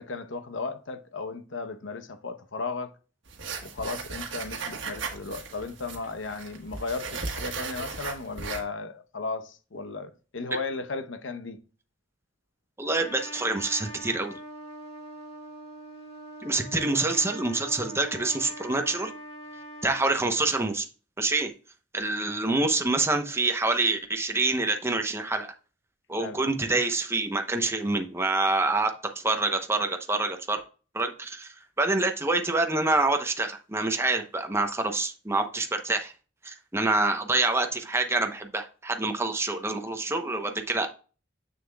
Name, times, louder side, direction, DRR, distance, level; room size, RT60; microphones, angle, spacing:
voice 1, 0.0-2.9 3.6-11.6 26.2-26.4, left 3 dB, 75° left, 0.8 m, -35 dB
sound 1, 3.3-8.6, right 4 dB, 70° right, 1.4 m, -36 dB
voice 2, 12.8-14.3 16.4-19.1 19.8-20.9 21.2-21.5 21.9-25.5 26.1-30.6 30.9-36.1 36.4-40.9, right 2 dB, 15° right, 0.8 m, -26 dB
Trumpet, 12.9-20.1, right 1 dB, 35° left, 1.8 m, -43 dB
7.1 x 6.7 x 2.3 m
head